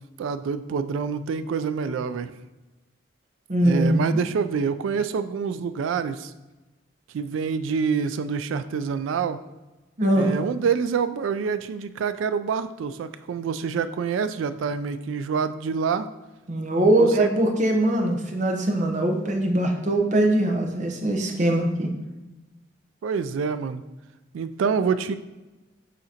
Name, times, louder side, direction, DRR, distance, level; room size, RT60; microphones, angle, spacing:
voice 1, 0.2-2.3 3.6-6.3 7.1-9.4 10.2-16.1 17.0-17.3 23.0-23.8 24.3-25.2, right 6 dB, 80° right, 12 dB, 0.3 m, -26 dB
voice 2, 3.5-4.2 10.0-10.3 16.5-21.9, right 1 dB, 40° right, 3 dB, 0.7 m, -22 dB
9.2 x 3.8 x 2.8 m, 1.1 s
head